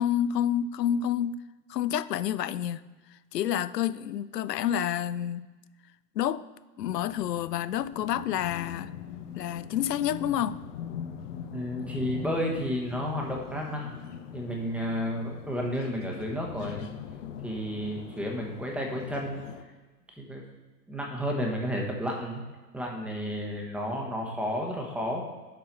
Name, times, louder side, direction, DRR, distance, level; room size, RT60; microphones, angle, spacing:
voice 1, 0.0-1.4 1.7-2.8 3.3-5.5 6.2-6.4 6.8-8.9 9.3-10.6, left 10 dB, 75° left, 0.6 m, -29 dB
sound 1, 6.8-19.6, left 8 dB, 45° left, 0.8 m, -41 dB
voice 2, 11.5-14.0 14.3-16.9 17.4-19.4 20.1-20.4 20.9-22.4 22.7-25.2, equal, 5° right, 1.2 m, -32 dB
7.5 x 4.6 x 5.5 m
hypercardioid pair, 125°, 50 cm